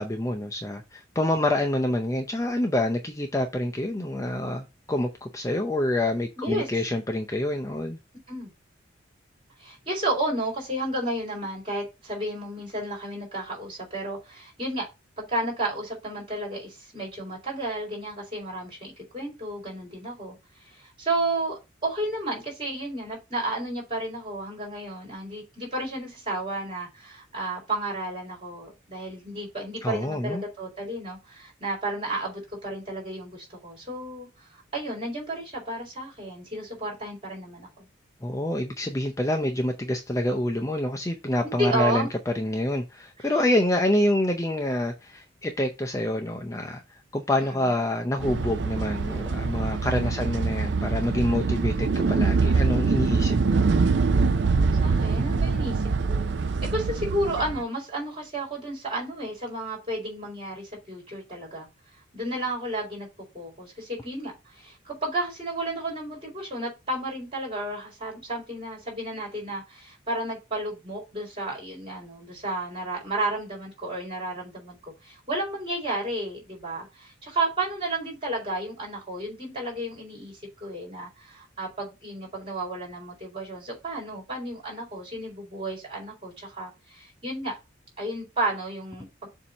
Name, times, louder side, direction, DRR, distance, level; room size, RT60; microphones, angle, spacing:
voice 1, 0.0-8.0 29.8-30.4 38.2-46.8 47.1-53.6, left 1 dB, 15° left, 0.5 m, -27 dB
voice 2, 6.4-6.7 8.3-8.5 9.6-14.9 15.2-20.4 20.7-37.9 41.4-42.1 43.2-43.4 47.4-47.8 50.1-50.3 54.8-56.3 56.6-61.7 62.1-63.1 63.3-74.8 75.0-87.6 88.0-89.3, right 1 dB, 30° right, 4.0 m, -32 dB
sound 1, 48.2-57.6, right 4 dB, 60° right, 0.5 m, -24 dB
7.2 x 2.7 x 5.3 m
head